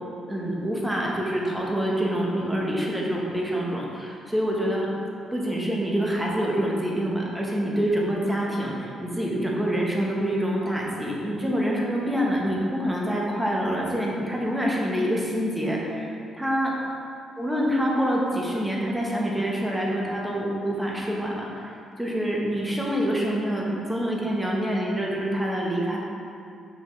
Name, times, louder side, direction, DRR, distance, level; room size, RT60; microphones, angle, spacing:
voice 1, 0.3-4.9 5.3-16.7 17.4-26.0, equal, 5° right, -3 dB, 1.1 m, -26 dB
5.7 x 5.6 x 3.2 m, 2.5 s
cardioid pair, 90°, 0 cm